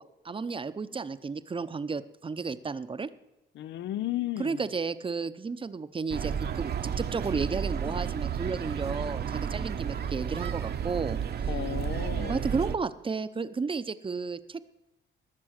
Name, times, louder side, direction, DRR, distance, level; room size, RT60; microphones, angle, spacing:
voice 1, 0.0-3.1 4.4-11.5 12.2-14.6, right 4 dB, 25° right, 13 dB, 0.7 m, -33 dB
voice 2, 3.6-4.6 11.5-12.4, left 14 dB, 65° left, 17 dB, 0.4 m, -34 dB
sound 1, 6.1-12.8, right 7 dB, 55° right, 0.9 m, -32 dB
20.0 x 6.9 x 6.5 m, 0.98 s
cardioid pair, 90°, 20 cm